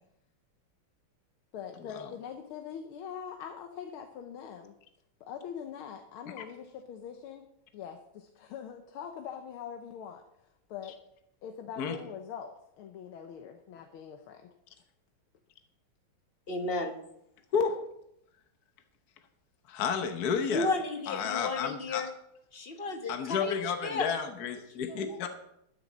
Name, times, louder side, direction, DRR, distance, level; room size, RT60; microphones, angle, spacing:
voice 1, 1.5-4.7 5.2-7.4 7.7-10.2 10.7-10.9 11.4-14.5, left 8 dB, 85° left, 4 dB, 1.8 m, -43 dB
voice 2, 16.5-17.0 20.5-22.1 22.5-23.5 23.8-24.1 24.9-25.3, left 3 dB, 35° left, 5 dB, 1.2 m, -33 dB
voice 3, 19.7-20.7 21.1-22.0 23.1-25.3, left 6 dB, 55° left, 6 dB, 1.4 m, -31 dB
13.5 x 9.9 x 4.1 m, 0.77 s
omnidirectional pair, 2.3 m